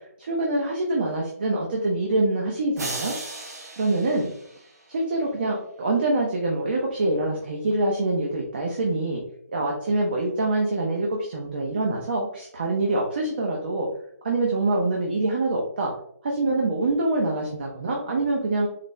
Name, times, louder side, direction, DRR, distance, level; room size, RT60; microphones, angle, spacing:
voice 1, 0.2-3.5 3.8-4.3 4.9-9.2 9.5-13.9 14.2-15.9 16.2-18.7, right 2 dB, 35° right, -1 dB, 0.7 m, -25 dB
sound 1, 2.8-5.1, right 2 dB, 80° right, 1.7 m, -36 dB
4.1 x 3.3 x 3.1 m, 0.67 s
hypercardioid pair, 170°, 9 cm